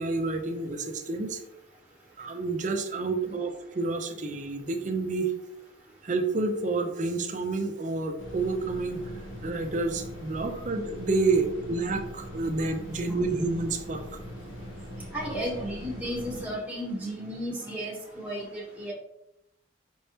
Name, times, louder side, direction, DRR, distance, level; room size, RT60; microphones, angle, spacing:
voice 1, 0.0-1.4 2.2-5.3 6.0-9.0 9.4-14.0, right 3 dB, 40° right, 5 dB, 0.5 m, -29 dB
sound 1, 8.2-16.4, equal, 85° left, 1.2 m, -41 dB
voice 2, 15.1-18.9, equal, 5° right, -3 dB, 1.0 m, -34 dB
5.3 x 3.4 x 2.8 m, 0.82 s
head